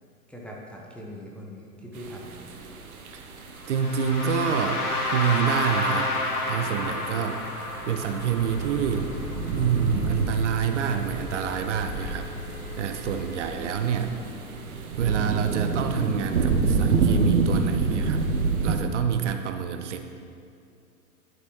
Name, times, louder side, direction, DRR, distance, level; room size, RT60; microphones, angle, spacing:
voice 1, 0.3-2.4 13.5-14.1, equal, 5° left, -3 dB, 0.6 m, -42 dB
sound 1, 2.0-18.8, right 4 dB, 70° right, 1.0 m, -29 dB
sound 2, 3.6-9.6, left 2 dB, 80° left, 1.6 m, -30 dB
voice 2, 3.7-6.1 6.5-9.1 9.5-14.2 15.0-18.2 18.6-20.0, right 7 dB, 55° right, 7 dB, 0.6 m, -27 dB
sound 3, 8.4-14.7, left 2 dB, 50° left, 1.0 m, -40 dB
11.5 x 6.0 x 3.0 m, 2.4 s
figure-of-eight pair, 100°, 45 cm